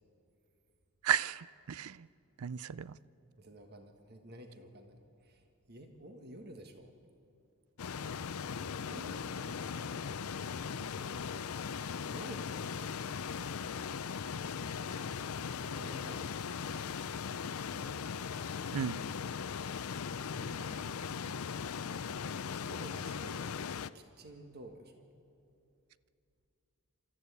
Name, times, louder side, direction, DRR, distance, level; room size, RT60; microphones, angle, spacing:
voice 1, 1.0-2.1 2.4-3.0 18.7-19.0, right 9 dB, 80° right, 0.5 m, -34 dB
voice 2, 3.4-5.4 5.7-6.9 8.9-10.0 12.1-13.1 15.6-16.4 20.4-21.2 22.7-23.5 23.9-25.1, right 1 dB, 50° right, 1.6 m, -51 dB
sound 1, 7.8-23.9, left 6 dB, 75° left, 0.5 m, -39 dB
29.0 x 14.0 x 8.3 m
head